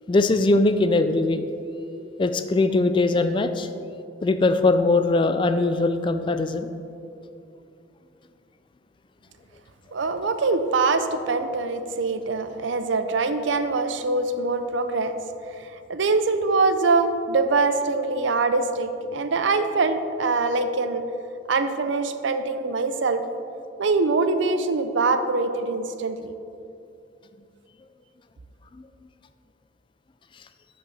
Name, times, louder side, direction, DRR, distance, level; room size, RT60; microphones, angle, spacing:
voice 1, 0.1-1.4 2.2-3.7 4.2-6.7, left 2 dB, 25° left, 9 dB, 0.3 m, -21 dB
voice 2, 9.9-15.2 15.6-21.0 21.5-23.2 23.8-26.3, right 3 dB, 70° right, 9 dB, 0.5 m, -23 dB
12.5 x 5.4 x 4.1 m, 2.6 s
head